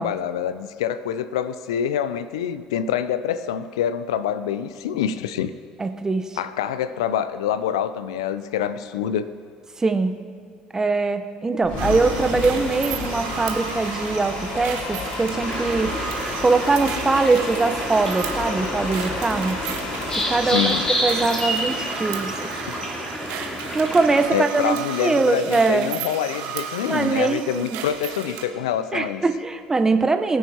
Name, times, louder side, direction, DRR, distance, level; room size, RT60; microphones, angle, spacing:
voice 1, 0.0-5.5 6.4-9.3 20.4-20.9 24.3-29.2, left 9 dB, 80° left, 14 dB, 0.4 m, -26 dB
voice 2, 5.8-6.4 9.8-10.1 10.7-15.9 16.4-19.6 20.3-22.7 23.3-25.9 26.8-27.8 28.9-30.4, right 3 dB, 20° right, 8 dB, 0.9 m, -22 dB
sound 1, 11.6-23.8, left 3 dB, 55° left, 2.3 m, -32 dB
sound 2, 11.8-28.5, right 8 dB, 70° right, 1.4 m, -34 dB
sound 3, 15.3-24.3, equal, 20° left, 3.3 m, -29 dB
21.0 x 9.4 x 2.9 m, 2.1 s
hypercardioid pair, 65°, 3 cm